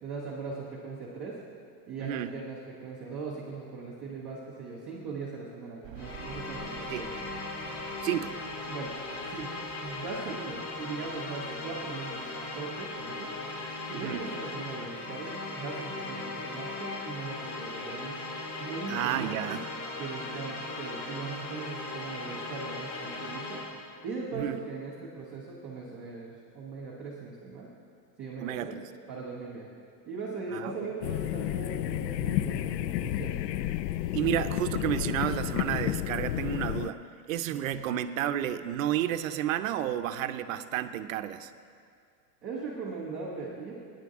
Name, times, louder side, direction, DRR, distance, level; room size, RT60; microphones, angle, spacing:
voice 1, 0.0-1.4 1.9-7.3 8.7-8.9 9.3-9.5 9.8-13.3 13.9-18.2 18.6-19.6 20.0-23.6 24.0-27.7 28.2-28.8 29.1-29.7 30.1-33.4 37.5-37.7 42.4-43.8, right 4 dB, 5° right, -12 dB, 0.4 m, -39 dB
voice 2, 2.0-2.3 6.9-7.0 8.0-8.3 13.9-14.2 18.9-19.7 24.3-24.6 28.4-28.8 30.5-30.9 34.1-37.0 37.3-41.5, right 11 dB, 55° right, 10 dB, 0.6 m, -31 dB
sound 1, 5.8-14.7 15.2-15.3 15.7-15.8 17.0-17.1 17.4-17.5, right 9 dB, 30° right, 1.1 m, -52 dB
sound 2, 5.9-23.9, left 2 dB, 65° left, 2.6 m, -38 dB
sound 3, 31.0-36.9, left 13 dB, 90° left, 0.6 m, -31 dB
21.5 x 10.0 x 3.6 m, 2.3 s
supercardioid pair, 175°, 48 cm